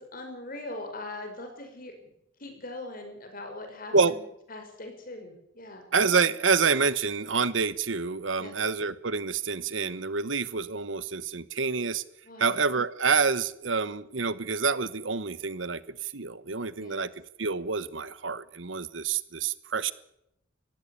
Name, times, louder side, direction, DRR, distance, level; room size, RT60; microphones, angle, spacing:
voice 1, 0.0-2.1 2.4-4.2 4.5-5.9 8.4-8.6 12.2-12.6 16.8-17.0, left 2 dB, 45° left, 5 dB, 5.3 m, -41 dB
voice 2, 5.9-12.0 12.4-17.1 17.4-19.9, right 5 dB, 75° right, 16 dB, 1.1 m, -27 dB
20.0 x 16.0 x 8.4 m, 0.80 s
head